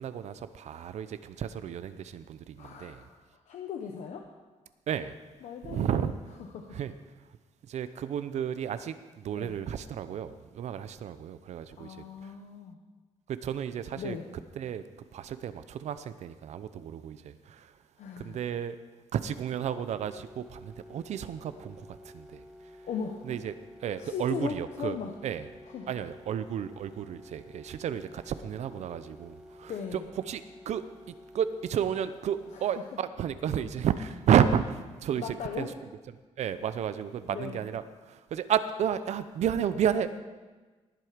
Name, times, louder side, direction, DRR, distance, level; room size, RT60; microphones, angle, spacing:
voice 1, 0.0-3.0 4.9-5.1 5.7-6.1 6.7-6.9 7.7-12.0 13.4-14.2 14.6-14.8 15.1-17.7 18.2-18.8 19.1-21.9 22.1-22.4 23.3-23.5 23.8-25.0 25.2-25.5 25.9-30.0 30.3-30.4 30.7-30.8 31.3-35.7 36.4-37.8 38.1-40.2, right 9 dB, 70° right, 12 dB, 0.6 m, -31 dB
voice 2, 2.6-4.3 5.4-6.1 6.4-6.8 9.3-9.6 11.8-12.8 14.0-14.3 18.0-18.4 22.8-23.3 24.0-25.2 25.7-26.0 29.7-30.1 32.5-32.8 35.2-35.7 37.3-37.6, left 7 dB, 80° left, 2 dB, 1.0 m, -38 dB
sound 1, 19.4-32.8, left 1 dB, 5° right, 1.4 m, -51 dB
19.0 x 7.7 x 5.1 m, 1.3 s
wide cardioid pair, 145°, 12 cm